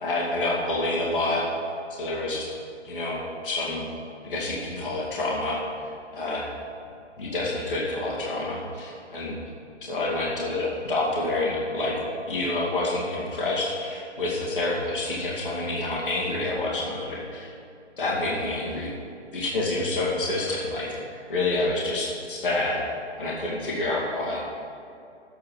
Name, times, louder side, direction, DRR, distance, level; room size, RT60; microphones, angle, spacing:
voice 1, 0.0-1.5 2.0-2.5 2.8-3.9 4.2-5.6 6.1-6.5 7.2-9.4 9.8-17.5 18.0-18.9 19.3-21.0 21.3-22.8 23.2-24.4, left 2 dB, 45° left, -4 dB, 2.3 m, -28 dB
11.5 x 8.7 x 4.7 m, 2.5 s
hypercardioid pair, 180°, 36 cm